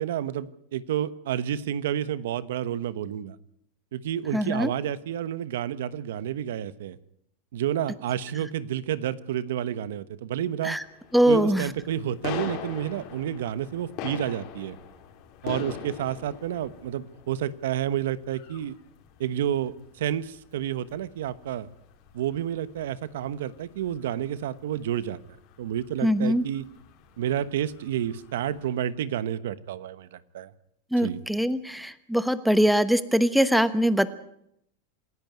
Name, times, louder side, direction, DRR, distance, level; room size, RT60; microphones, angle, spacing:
voice 1, 0.0-3.4 3.9-7.0 7.5-10.8 11.3-14.8 15.4-18.8 19.2-21.7 22.1-25.2 25.6-26.7 27.2-30.5 31.0-31.2, right 10 dB, 80° right, 15 dB, 1.1 m, -30 dB
voice 2, 4.3-4.7 10.6-10.8 11.1-11.7 26.0-26.4 30.9-34.1, equal, ahead, 13 dB, 1.0 m, -22 dB
sound 1, 10.7-28.7, left 9 dB, 45° left, 4.2 m, -43 dB
27.5 x 10.5 x 9.5 m, 0.73 s
supercardioid pair, 145°, 0 cm